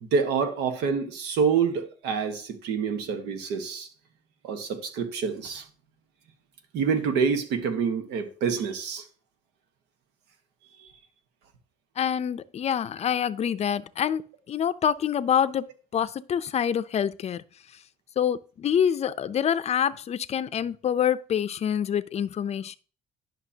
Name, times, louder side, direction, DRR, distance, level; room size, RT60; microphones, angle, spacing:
voice 1, 0.0-3.9 4.4-5.7 6.7-9.0 10.8-10.9, right 6 dB, 85° right, 1.4 m, -27 dB
voice 2, 12.0-14.2 14.5-15.7 15.9-17.4 18.2-22.8, left 9 dB, 40° left, 0.5 m, -26 dB
11.0 x 5.9 x 2.8 m
cardioid pair, 110°, 17 cm